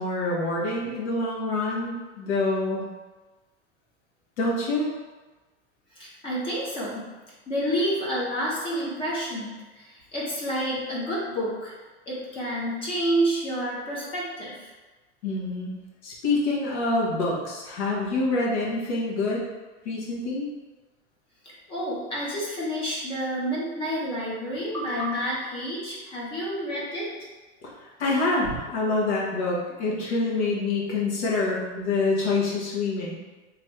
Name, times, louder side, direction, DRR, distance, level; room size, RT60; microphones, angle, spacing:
voice 1, 0.0-2.9 4.4-4.9 15.2-15.7 16.0-19.4 19.8-20.5 27.6-33.1, left 2 dB, 80° left, -4 dB, 1.3 m, -26 dB
voice 2, 5.9-7.0 7.5-11.7 12.1-14.7 21.4-27.1, equal, 15° left, -5 dB, 0.5 m, -29 dB
3.0 x 2.6 x 4.4 m, 1.2 s
supercardioid pair, 165°, 34 cm